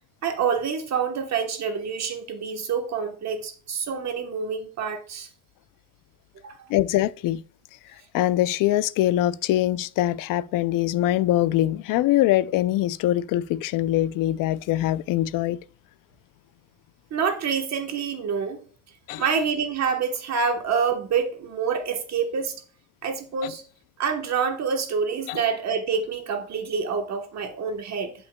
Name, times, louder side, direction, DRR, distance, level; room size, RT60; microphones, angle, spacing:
voice 1, 0.2-5.3 6.4-6.6 17.1-18.6 19.2-22.5 23.0-23.6 24.0-28.1, right 6 dB, 55° right, 1.2 m, -27 dB
voice 2, 6.7-7.4 8.1-15.6 19.1-19.2 23.4-23.5 25.3-25.4, left 14 dB, 80° left, 0.5 m, -23 dB
10.5 x 5.5 x 2.3 m
cardioid pair, 110°, 32 cm